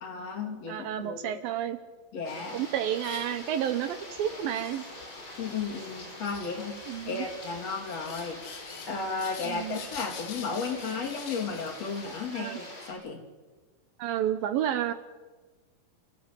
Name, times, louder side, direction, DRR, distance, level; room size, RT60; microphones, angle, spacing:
voice 1, 0.0-1.4 2.1-2.6 5.4-8.4 8.9-13.2, left 4 dB, 45° left, 2 dB, 3.2 m, -34 dB
voice 2, 0.7-1.8 2.5-4.8 6.9-7.3 9.4-9.8 12.3-12.6 14.0-14.9, right 10 dB, 75° right, 12 dB, 2.4 m, -30 dB
sound 1, 2.3-12.9, left 1 dB, 25° left, 6.2 m, -45 dB
sound 2, 3.0-12.3, left 8 dB, 60° left, 3.3 m, -48 dB
29.0 x 15.5 x 8.3 m, 1.3 s
omnidirectional pair, 4.6 m